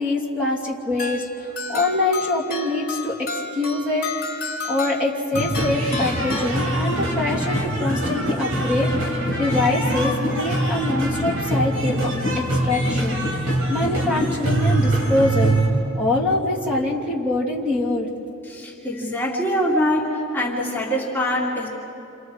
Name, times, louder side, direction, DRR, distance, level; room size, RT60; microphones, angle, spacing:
voice 1, 0.0-4.1 4.7-15.5 15.9-18.1, left 2 dB, 5° right, -4 dB, 2.8 m, -24 dB
sound 1, 1.0-7.1, left 3 dB, 50° left, 2.6 m, -32 dB
sound 2, 5.3-15.7, right 1 dB, 75° right, 4.5 m, -23 dB
voice 2, 18.4-21.7, equal, 10° left, -4 dB, 2.7 m, -24 dB
29.5 x 28.5 x 4.8 m, 2.8 s
head